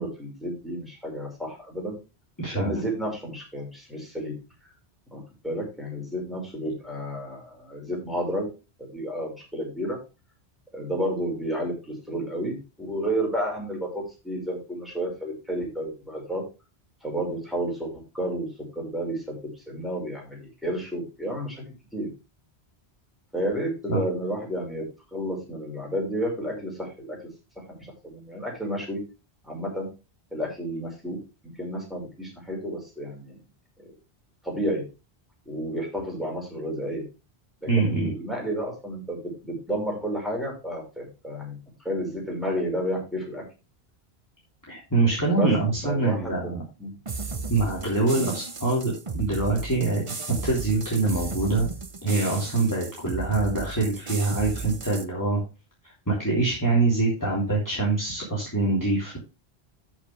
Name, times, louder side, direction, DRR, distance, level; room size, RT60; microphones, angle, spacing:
voice 1, 0.0-1.9 2.5-4.3 5.1-8.5 8.8-10.0 10.7-16.4 17.0-18.5 18.8-19.4 19.7-21.6 21.9-22.1 23.3-24.8 25.1-27.2 27.8-29.0 29.4-29.9 30.3-31.2 31.4-33.3 33.8-33.9 34.4-34.8 35.5-37.0 37.6-41.6 41.8-43.4 45.4-45.5 45.9-46.4 46.8-46.9 48.1-48.4, equal, ahead, -2 dB, 5.4 m, -31 dB
voice 2, 2.4-2.7 23.9-24.0 37.7-38.1 44.7-46.6 47.5-50.0 50.4-51.7 52.0-55.4 55.8-59.2, right 3 dB, 15° left, -5 dB, 3.3 m, -24 dB
sound 1, 47.0-55.0, right 4 dB, 30° right, 0.9 m, -35 dB
13.5 x 6.2 x 3.3 m, 0.29 s
omnidirectional pair, 1.1 m